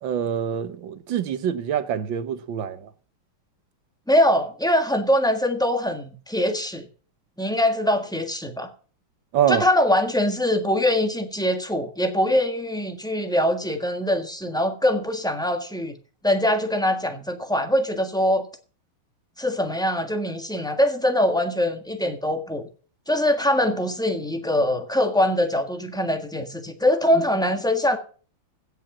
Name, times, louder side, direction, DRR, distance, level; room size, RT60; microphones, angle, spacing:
voice 1, 0.0-2.9 9.3-9.6, right 9 dB, 70° right, 1.7 m, -25 dB
voice 2, 4.1-6.8 7.4-8.7 9.5-16.0 16.2-18.4 19.4-22.7 23.1-28.0, left 1 dB, ahead, 1.2 m, -23 dB
16.5 x 5.7 x 7.2 m
omnidirectional pair, 2.3 m